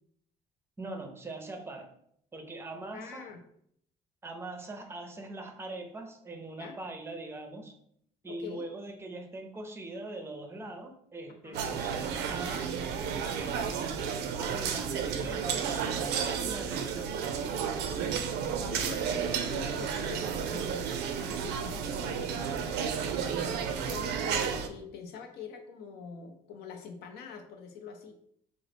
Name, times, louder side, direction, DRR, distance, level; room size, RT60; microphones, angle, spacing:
voice 1, 0.8-1.9 2.3-3.3 4.2-7.7 8.2-12.7 13.3-14.0 14.4-18.0 23.2-24.2, right 2 dB, 15° right, 5 dB, 0.5 m, -42 dB
voice 2, 2.9-3.4 6.6-6.8 8.3-8.7 11.4-11.7 18.6-22.9 23.9-28.2, left 6 dB, 75° left, 4 dB, 0.6 m, -45 dB
sound 1, 11.5-24.7, right 7 dB, 85° right, 0.4 m, -32 dB
3.7 x 2.0 x 3.3 m, 0.69 s
cardioid pair, 110°, 17 cm